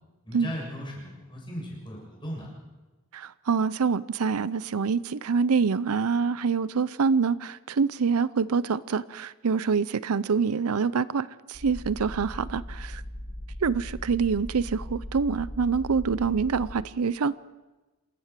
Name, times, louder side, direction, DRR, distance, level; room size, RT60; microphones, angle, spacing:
voice 1, 0.2-2.5, equal, 20° left, -2 dB, 7.1 m, -37 dB
voice 2, 3.1-13.0 13.6-17.3, right 5 dB, 80° right, 18 dB, 0.6 m, -26 dB
sound 1, 11.5-16.9, left 1 dB, 55° left, 2.8 m, -39 dB
27.0 x 14.0 x 7.4 m, 1.2 s
head